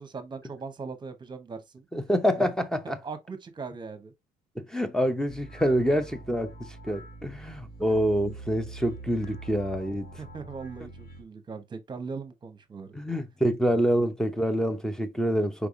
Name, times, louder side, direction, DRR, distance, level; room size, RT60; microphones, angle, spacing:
voice 1, 0.0-1.9 2.4-2.5 2.8-4.1 10.2-12.9, right 5 dB, 25° right, 1.0 m, -39 dB
voice 2, 1.9-3.0 4.6-10.1 12.9-15.7, equal, 5° left, 0.7 m, -26 dB
sound 1, 5.3-11.2, right 2 dB, 60° left, 1.9 m, -44 dB
4.8 x 3.4 x 2.5 m
cardioid pair, 110°, 17 cm